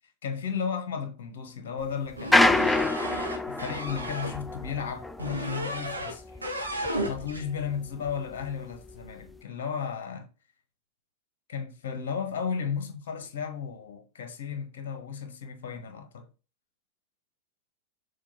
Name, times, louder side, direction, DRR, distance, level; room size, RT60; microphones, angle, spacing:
voice 1, 0.2-6.4 7.1-10.2 11.5-16.2, left 6 dB, 55° left, 1.4 m, -34 dB
sound 1, 2.1-7.7 8.1-9.3, left 2 dB, 5° left, 0.4 m, -27 dB
sound 2, 2.2-4.3 5.2-6.2 6.4-7.4, equal, 80° right, 1.2 m, -33 dB
6.7 x 3.3 x 4.2 m
figure-of-eight pair, 90°, 0 cm